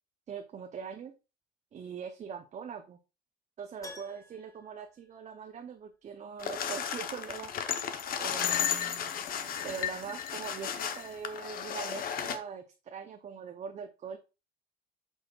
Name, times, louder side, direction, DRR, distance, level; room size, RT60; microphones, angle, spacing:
voice 1, 0.3-1.1 1.7-3.0 3.6-7.5 8.2-9.1 9.6-14.2, right 6 dB, 45° right, 6 dB, 0.7 m, -42 dB
Keyboard (musical), 3.8-5.9 6.1-6.2 8.9-9.0 9.3-9.4, left 2 dB, 20° left, 1.4 m, -52 dB
sound 1, 6.4-12.4, left 8 dB, 60° left, 0.9 m, -34 dB
7.7 x 6.3 x 2.4 m, 0.29 s
cardioid pair, 110°, 17 cm